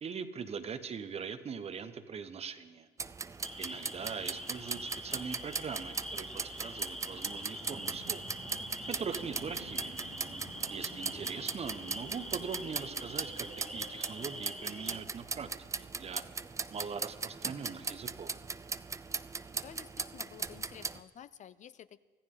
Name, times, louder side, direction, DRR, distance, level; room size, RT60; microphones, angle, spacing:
voice 1, 0.0-2.9 3.6-8.2 8.9-10.0 10.7-15.5 15.8-16.2 16.7-18.3, right 6 dB, 35° right, 10 dB, 1.1 m, -41 dB
sound 1, 3.0-21.0, right 4 dB, 20° right, 0.5 m, -39 dB
sound 2, 3.4-15.0, equal, 5° left, 1.0 m, -45 dB
sound 3, 7.6-15.0, right 4 dB, 80° right, 3.7 m, -52 dB
voice 2, 19.5-22.0, left 10 dB, 45° left, 16 dB, 0.5 m, -52 dB
24.5 x 14.5 x 3.9 m, 1.5 s
cardioid pair, 110°, 17 cm